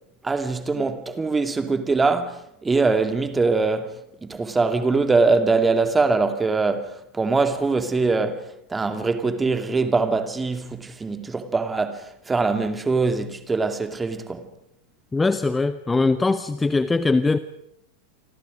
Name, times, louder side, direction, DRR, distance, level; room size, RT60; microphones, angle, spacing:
voice 1, 0.2-14.5, right 3 dB, 10° right, 2.3 m, -23 dB
voice 2, 15.1-17.4, left 3 dB, 10° left, 0.9 m, -21 dB
29.0 x 25.5 x 5.2 m
figure-of-eight pair, 90°, 0 cm